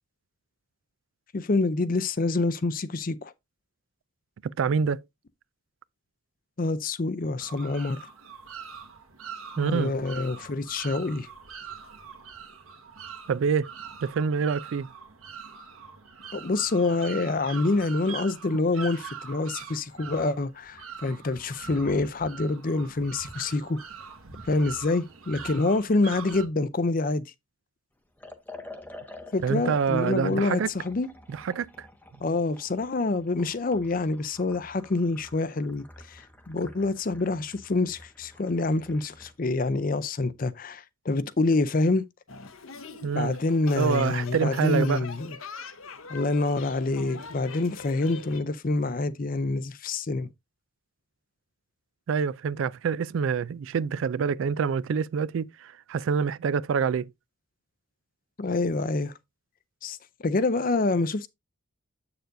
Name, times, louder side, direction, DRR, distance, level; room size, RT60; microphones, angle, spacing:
voice 1, 1.3-3.3 6.6-8.1 9.6-11.3 16.3-23.8 24.4-27.2 29.3-31.1 32.2-42.0 43.1-45.4 46.1-50.3 58.4-59.1 59.8-60.0 60.2-61.3, left 3 dB, 40° left, 0.5 m, -26 dB
voice 2, 4.4-5.0 9.6-9.9 13.3-13.7 14.0-14.9 29.4-30.7 31.3-31.9 43.0-43.3 43.8-45.0 52.1-57.1, right 6 dB, 65° right, 0.3 m, -26 dB
sound 1, 7.4-26.5, right 6 dB, 85° right, 1.6 m, -43 dB
Liquid, 28.2-39.4, left 2 dB, 10° left, 0.8 m, -49 dB
sound 2, 42.3-48.4, left 4 dB, 75° left, 1.0 m, -42 dB
7.8 x 6.8 x 2.6 m
head